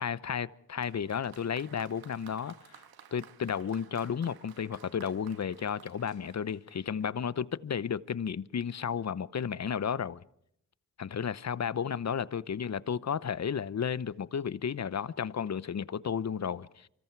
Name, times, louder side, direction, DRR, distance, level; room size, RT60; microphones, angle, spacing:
voice 1, 0.0-2.8 3.1-10.2 11.0-16.9, left 7 dB, 45° left, 0.9 m, -33 dB
Applause, 0.8-7.3 8.2-8.3, right 8 dB, 80° right, 1.6 m, -55 dB
26.5 x 25.5 x 4.7 m
supercardioid pair, 45°, 36 cm